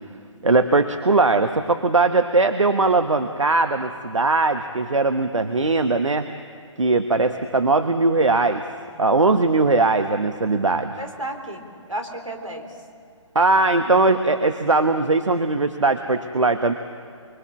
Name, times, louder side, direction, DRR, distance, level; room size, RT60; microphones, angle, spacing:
voice 1, 0.4-6.3 6.8-8.6 9.0-11.0 13.3-16.7, right 3 dB, 70° right, 8 dB, 1.1 m, -20 dB
voice 2, 11.0-12.7, right 1 dB, 90° right, 4 dB, 3.8 m, -33 dB
24.5 x 23.5 x 7.4 m, 2.4 s
figure-of-eight pair, 140°, 16 cm